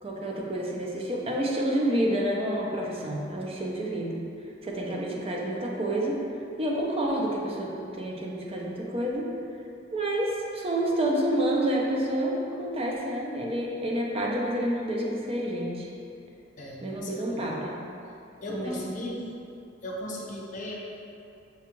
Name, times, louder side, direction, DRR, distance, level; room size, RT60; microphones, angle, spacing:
voice 1, 0.0-4.2 4.6-6.2 6.6-9.3 9.9-15.9 16.8-17.8 18.5-18.8, right 1 dB, 30° right, -2 dB, 0.6 m, -29 dB
voice 2, 16.6-17.6 18.4-19.3 19.8-20.7, left 1 dB, 45° left, -3 dB, 0.7 m, -37 dB
6.9 x 2.4 x 3.0 m, 2.6 s
head